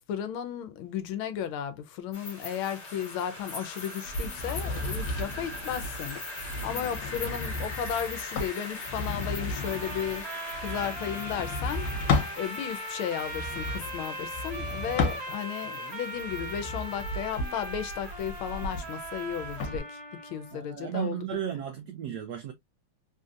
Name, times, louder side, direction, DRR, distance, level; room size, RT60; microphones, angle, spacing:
voice 1, 0.1-10.3 10.6-11.9 12.4-19.9 20.2-21.2, left 9 dB, 75° left, 1.5 m, -34 dB
sound 1, 2.1-19.7, left 2 dB, 35° left, 1.6 m, -41 dB
sound 2, 4.1-12.4 13.2-15.7 16.2-19.8, left 3 dB, 60° left, 1.5 m, -34 dB
sound 3, 9.5-20.6, right 2 dB, 40° right, 1.0 m, -39 dB
voice 2, 20.5-22.5, right 9 dB, 80° right, 0.9 m, -34 dB
3.8 x 2.7 x 2.4 m
omnidirectional pair, 2.4 m